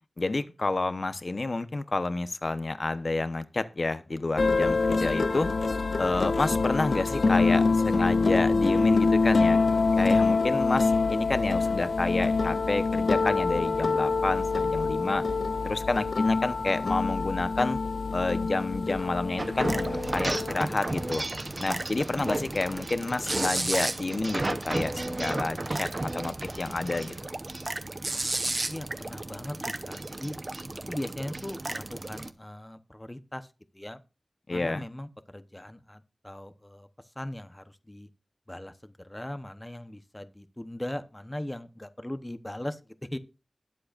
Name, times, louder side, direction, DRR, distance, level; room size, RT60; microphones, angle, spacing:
voice 1, 0.2-5.5 6.0-9.6 10.0-15.2 15.6-17.8 18.1-19.9 20.1-21.2 21.6-27.1 34.5-34.8, left 2 dB, 50° left, 12 dB, 0.9 m, -29 dB
sound 1, 4.4-21.2, left 4 dB, 75° left, 0.7 m, -25 dB
sound 2, 19.4-32.3, right 2 dB, 35° right, 0.8 m, -33 dB
voice 2, 28.7-29.6 29.8-30.4 30.9-34.0 34.5-38.1 38.5-43.2, left 1 dB, 15° left, 11 dB, 0.9 m, -39 dB
20.5 x 7.7 x 2.5 m, 0.31 s
wide cardioid pair, 85°, 0 cm